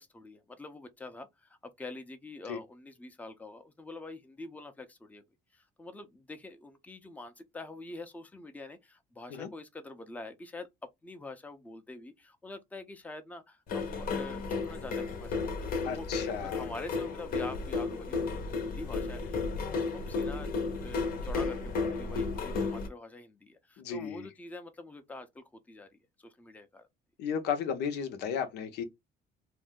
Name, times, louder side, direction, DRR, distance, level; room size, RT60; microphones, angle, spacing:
voice 1, 0.0-5.2 5.5-10.7 11.0-16.1 16.4-20.5 20.8-25.9 26.2-26.9, left 2 dB, 10° left, 0.5 m, -45 dB
sound 1, 13.7-22.9, left 4 dB, 60° left, 0.8 m, -33 dB
voice 2, 15.8-16.6 23.8-24.3 27.2-28.8, left 7 dB, 85° left, 0.7 m, -34 dB
2.6 x 2.1 x 3.6 m
cardioid pair, 110°, 17 cm